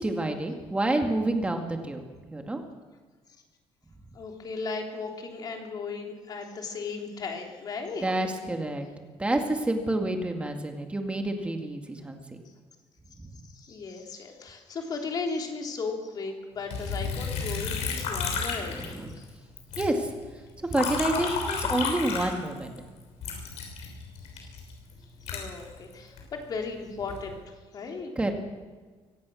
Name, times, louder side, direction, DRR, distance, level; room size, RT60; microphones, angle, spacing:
voice 1, 0.0-2.0 2.3-2.6 8.0-8.9 9.2-12.2 18.7-19.1 19.8-20.1 20.6-22.8 28.2-28.3, right 1 dB, 10° right, 4 dB, 2.2 m, -28 dB
voice 2, 4.1-8.1 13.5-19.3 24.4-24.5 25.3-27.4 27.7-28.1, left 4 dB, 35° left, 2 dB, 3.4 m, -36 dB
Liquid, 16.7-19.3 19.6-22.8 23.2-26.2 26.8-27.3, left 5 dB, 85° left, 6.4 m, -32 dB
24.0 x 16.5 x 6.4 m, 1.4 s
cardioid pair, 180°, 11 cm